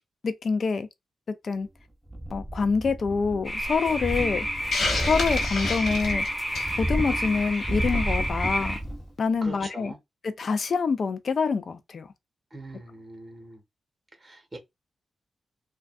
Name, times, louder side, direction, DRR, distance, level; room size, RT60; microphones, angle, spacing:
voice 1, 0.2-0.9 1.4-1.7 2.3-4.5 5.1-6.2 6.8-8.8 9.2-9.9 10.2-12.1, left 5 dB, 60° left, 0.4 m, -26 dB
sound 1, 2.1-3.5 3.8-9.1 9.5-9.6, right 1 dB, ahead, 0.6 m, -32 dB
sound 2, 3.4-8.8, equal, 25° left, 1.1 m, -30 dB
Hiss, 4.7-6.8, left 3 dB, 80° left, 0.9 m, -30 dB
voice 2, 9.4-10.0 12.5-13.6 14.2-14.6, right 2 dB, 25° right, 1.2 m, -42 dB
3.5 x 2.3 x 2.3 m
cardioid pair, 80°, 0 cm